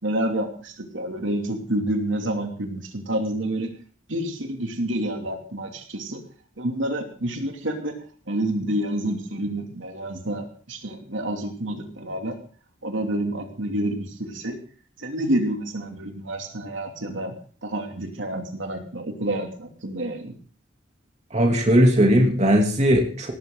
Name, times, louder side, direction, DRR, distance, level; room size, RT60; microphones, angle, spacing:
voice 1, 0.0-3.7 4.1-6.2 6.6-7.9 8.3-12.3 12.8-14.6 15.0-17.3 17.6-20.3, right 1 dB, 85° right, 3 dB, 2.8 m, -28 dB
voice 2, 21.3-23.3, equal, 35° right, 1 dB, 3.0 m, -18 dB
18.0 x 14.5 x 3.9 m, 0.42 s
head